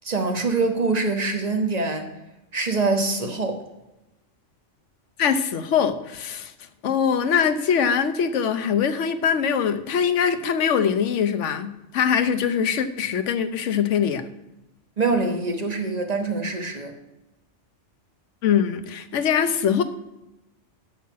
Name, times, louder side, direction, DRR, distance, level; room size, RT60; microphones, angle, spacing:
voice 1, 0.0-2.1 2.5-3.6 15.0-17.0, right 3 dB, 35° right, 4 dB, 1.2 m, -24 dB
voice 2, 5.2-6.5 6.8-14.2 18.4-19.8, left 7 dB, 80° left, 10 dB, 1.1 m, -22 dB
8.5 x 5.7 x 7.4 m, 0.96 s
omnidirectional pair, 1.2 m